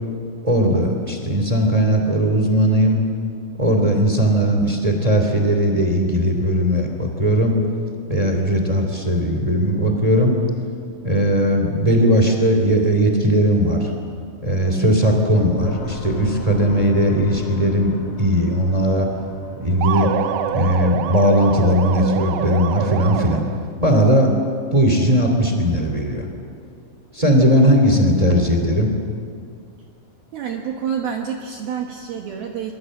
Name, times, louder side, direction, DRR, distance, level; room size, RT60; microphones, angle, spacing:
voice 1, 0.4-3.0 3.6-7.5 8.1-10.3 11.0-13.9 14.4-19.1 19.6-20.1 20.5-23.4 23.8-24.3 24.7-26.3 27.1-28.9, equal, 15° right, 3 dB, 1.5 m, -18 dB
sound 1, 15.6-21.9, left 2 dB, 45° left, 3.3 m, -34 dB
sound 2, 19.8-23.7, right 9 dB, 90° right, 2.3 m, -26 dB
voice 2, 30.3-32.7, right 7 dB, 65° right, 2 dB, 2.6 m, -28 dB
26.0 x 23.0 x 7.8 m, 2.3 s
omnidirectional pair, 5.9 m